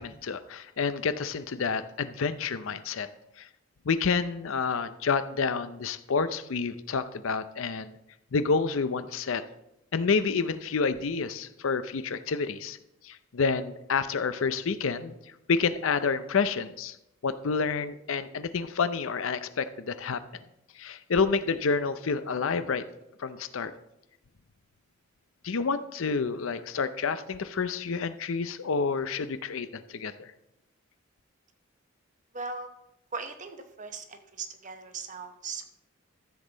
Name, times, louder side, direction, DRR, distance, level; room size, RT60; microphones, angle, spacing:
voice 1, 0.0-3.1 3.4-3.5 3.8-8.0 8.3-9.4 9.9-12.8 13.0-15.2 15.5-17.0 17.2-20.2 20.7-22.8 23.2-23.7 25.4-30.3, left 5 dB, 70° left, 13 dB, 0.5 m, -29 dB
voice 2, 32.3-32.7 33.1-35.8, right 4 dB, 35° right, 7 dB, 0.8 m, -39 dB
13.0 x 7.4 x 3.9 m, 0.88 s
head